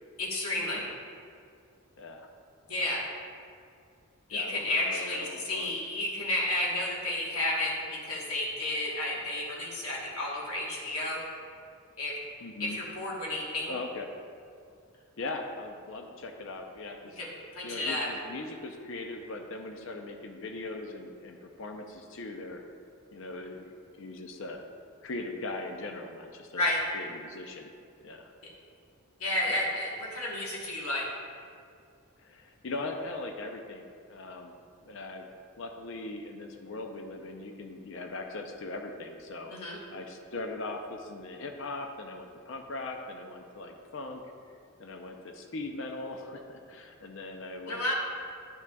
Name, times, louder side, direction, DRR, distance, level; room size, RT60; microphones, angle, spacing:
voice 1, 0.2-0.9 2.7-3.0 4.3-11.2 12.0-12.2 12.6-13.7 17.2-17.3 17.5-18.1 26.5-26.8 29.2-31.1 39.5-39.8 47.7-47.9, left 1 dB, 90° left, -3 dB, 1.2 m, -31 dB
voice 2, 2.0-2.3 4.3-5.8 12.4-12.8 13.7-14.1 15.2-17.2 17.6-22.6 23.1-24.6 25.0-27.7 28.0-28.3 29.5-29.7 32.2-34.6 34.8-35.3 35.6-39.5 39.9-44.2 44.8-47.9, left 2 dB, 60° left, 4 dB, 0.5 m, -40 dB
10.5 x 5.9 x 2.3 m, 2.3 s
head